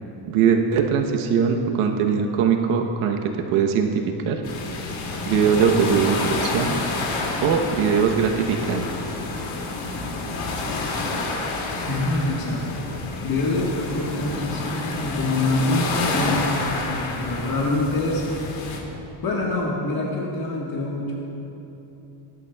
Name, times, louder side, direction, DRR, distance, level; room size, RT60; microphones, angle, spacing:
voice 1, 0.3-3.2 3.5-4.4 5.3-6.8 7.4-8.9, right 6 dB, 80° right, 3 dB, 1.0 m, -21 dB
sound 1, 4.4-18.8, left 3 dB, 75° left, 2.4 m, -29 dB
voice 2, 11.9-12.7 13.2-18.4 19.2-21.1, left 2 dB, 45° left, -3 dB, 1.5 m, -25 dB
20.5 x 11.5 x 2.3 m, 3.0 s
cardioid pair, 180°, 49 cm